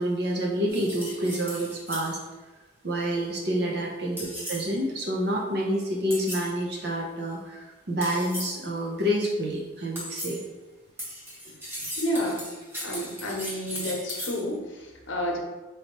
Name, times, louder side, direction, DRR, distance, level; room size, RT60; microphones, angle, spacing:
voice 1, 0.0-2.2 2.8-10.4 11.5-11.9, equal, 55° right, -1 dB, 0.7 m, -28 dB
sound 1, 0.7-2.2 4.2-4.7 6.1-6.5 8.0-8.6 10.0-10.5 11.0-14.4, equal, 10° right, 0.9 m, -37 dB
voice 2, 12.0-12.5 12.8-15.4, equal, 80° left, 0 dB, 0.9 m, -30 dB
4.2 x 3.3 x 3.0 m, 1.2 s
head